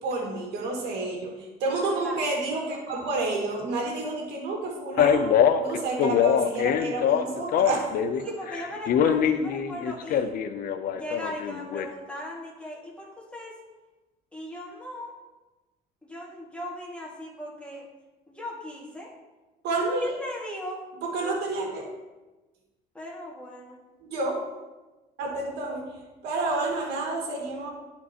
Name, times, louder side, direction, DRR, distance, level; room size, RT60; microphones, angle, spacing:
voice 1, 0.0-7.9 8.2-8.4 19.6-20.2 21.0-21.8 24.0-24.4 25.2-25.9 26.2-27.7, right 3 dB, 80° right, 0 dB, 1.9 m, -30 dB
voice 2, 1.7-2.2 8.2-10.4 10.9-13.6 14.3-15.2 16.0-17.9 18.3-19.1 20.0-20.9 21.2-21.3 22.9-23.8, equal, 5° left, -3 dB, 1.9 m, -38 dB
Male speech man speaking, 5.0-8.2 8.5-11.9, left 8 dB, 60° left, 0.6 m, -23 dB
12.0 x 4.4 x 2.9 m, 1.1 s
cardioid pair, 110°, 17 cm